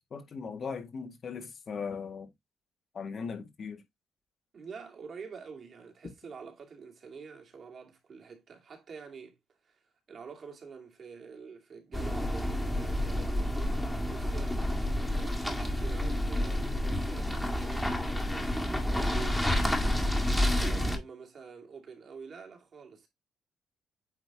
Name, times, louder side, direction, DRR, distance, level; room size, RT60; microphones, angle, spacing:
voice 1, 0.1-2.3 2.9-3.8, left 5 dB, 50° left, 1.8 m, -38 dB
voice 2, 4.5-9.4 9.6-9.8 10.1-14.6 15.1-23.1, right 5 dB, 50° right, 2.4 m, -47 dB
sound 1, 11.9-21.0, left 1 dB, 10° left, 1.8 m, -29 dB
8.9 x 3.3 x 3.6 m
cardioid pair, 90°, 0 cm